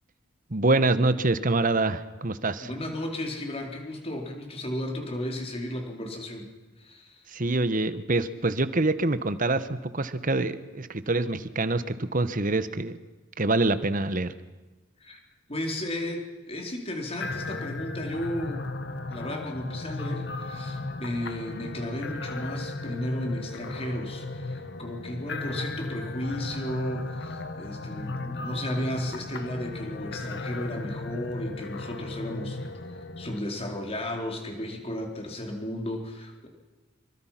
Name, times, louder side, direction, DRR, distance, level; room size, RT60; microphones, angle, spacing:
voice 1, 0.5-2.7 7.3-12.9 13.4-14.3, right 2 dB, 40° right, 13 dB, 1.2 m, -25 dB
voice 2, 2.6-6.5 6.8-7.3 15.0-15.2 15.5-18.7 19.1-32.6 32.9-36.5, left 1 dB, 30° left, 2 dB, 4.1 m, -34 dB
sound 1, 17.2-33.4, left 2 dB, 55° left, 1.4 m, -36 dB
27.0 x 23.5 x 5.9 m, 1.2 s
head